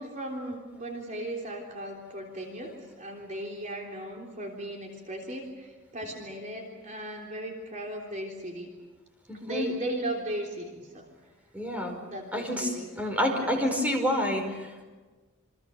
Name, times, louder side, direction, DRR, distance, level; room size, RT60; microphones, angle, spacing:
voice 1, 0.0-8.7 9.4-11.1 12.0-12.9 13.4-13.5, right 1 dB, 35° right, 0 dB, 3.5 m, -37 dB
voice 2, 9.3-9.7 11.5-11.9 12.3-14.8, equal, 5° right, 3 dB, 4.9 m, -28 dB
28.5 x 25.5 x 6.9 m, 1.3 s
head